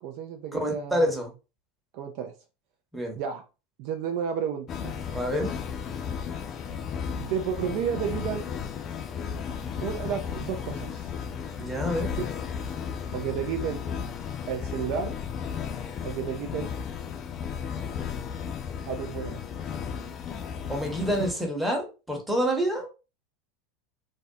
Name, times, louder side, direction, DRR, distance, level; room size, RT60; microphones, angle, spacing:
voice 1, 0.0-1.2 1.9-2.3 3.2-3.4 3.8-4.9 7.2-8.5 9.8-11.1 13.1-13.8 14.5-15.1 16.0-16.7 18.9-19.4, right 8 dB, 55° right, 6 dB, 0.4 m, -32 dB
voice 2, 0.5-1.3 2.9-3.2 5.1-5.5 11.6-12.1 20.7-22.9, equal, 5° right, 0 dB, 0.9 m, -27 dB
sound 1, 4.7-21.3, left 7 dB, 40° left, 0.3 m, -34 dB
2.5 x 2.1 x 2.3 m, 0.30 s
hypercardioid pair, 85°, 0 cm